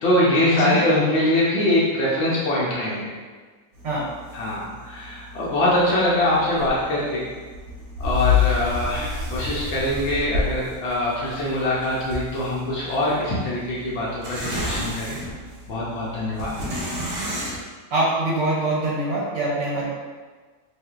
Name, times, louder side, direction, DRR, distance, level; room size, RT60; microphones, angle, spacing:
voice 1, 0.0-3.1 4.3-7.2 8.0-15.2 15.7-16.6, left 1 dB, 70° left, -6 dB, 0.6 m, -23 dB
sound 1, 3.7-17.6, left 4 dB, 65° right, 1.1 m, -30 dB
voice 2, 17.9-19.8, right 2 dB, 80° right, -6 dB, 1.3 m, -23 dB
3.3 x 2.5 x 2.3 m, 1.4 s
omnidirectional pair, 1.8 m